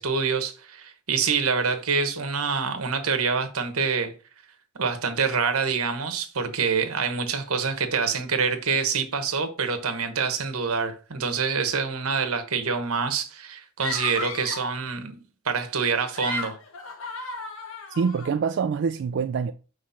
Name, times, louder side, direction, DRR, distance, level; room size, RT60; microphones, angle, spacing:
voice 1, 0.0-4.1 4.7-15.2 15.4-16.6, right 5 dB, 85° right, 1.1 m, -26 dB
sound 1, 13.8-14.8 15.9-18.3, left 3 dB, 70° left, 1.0 m, -34 dB
voice 2, 17.9-19.5, right 6 dB, 55° right, 0.3 m, -25 dB
5.8 x 3.1 x 5.6 m
head